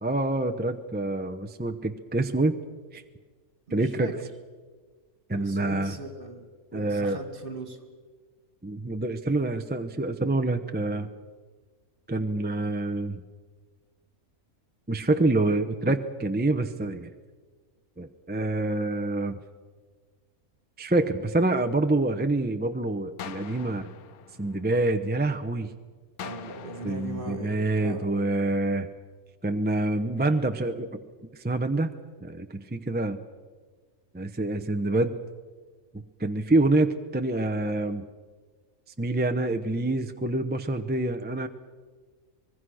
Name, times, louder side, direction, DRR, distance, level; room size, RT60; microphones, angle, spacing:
voice 1, 0.0-2.6 2.9-3.0 3.7-4.1 5.3-6.0 6.7-7.2 8.6-11.1 12.1-13.2 14.9-17.1 18.0-19.4 20.8-23.9 24.4-25.7 26.8-28.9 29.4-31.0 31.4-31.9 32.2-33.2 34.1-35.2 36.2-38.0 39.0-41.5, right 2 dB, 10° right, 6 dB, 0.5 m, -26 dB
voice 2, 3.7-4.3 5.3-6.5 6.7-7.8 26.2-28.3, right 2 dB, 35° right, 7 dB, 2.3 m, -39 dB
sound 1, 23.2-25.2 26.2-28.2, left 8 dB, 80° left, 1.3 m, -44 dB
25.5 x 20.5 x 6.4 m, 1.5 s
omnidirectional pair, 1.5 m